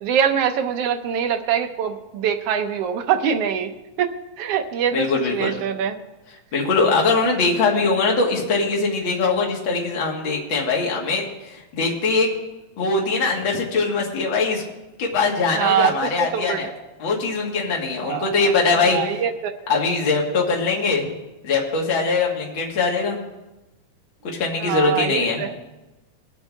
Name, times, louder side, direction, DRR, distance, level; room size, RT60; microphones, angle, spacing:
voice 1, 0.0-3.7 4.0-6.0 15.5-16.6 18.0-19.5 24.6-25.5, right 8 dB, 70° right, 6 dB, 1.6 m, -24 dB
voice 2, 4.9-5.6 6.5-12.3 12.8-14.6 15.0-16.7 17.0-19.0 19.7-21.1 21.4-23.2 24.2-25.4, left 4 dB, 45° left, -2 dB, 2.4 m, -21 dB
20.0 x 8.3 x 3.5 m, 1.0 s
omnidirectional pair, 3.3 m